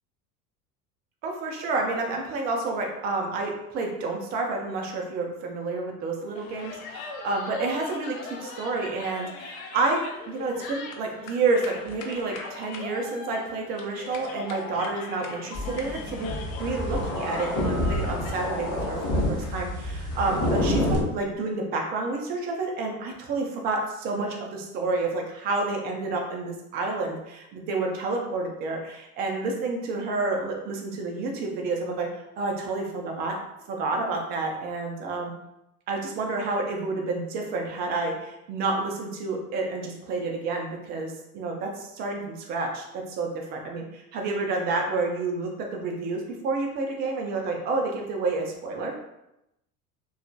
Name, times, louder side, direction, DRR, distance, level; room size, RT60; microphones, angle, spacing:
voice 1, 1.2-10.0 10.3-19.0 19.3-32.1 32.4-33.4 33.7-35.3 35.9-48.9, right 3 dB, 25° right, 1 dB, 0.4 m, -29 dB
sound 1, 6.3-18.4, left 4 dB, 60° left, 0.6 m, -40 dB
sound 2, 15.5-21.0, left 1 dB, 30° left, 0.9 m, -28 dB
2.7 x 2.3 x 2.6 m, 0.88 s
figure-of-eight pair, 80°, 47 cm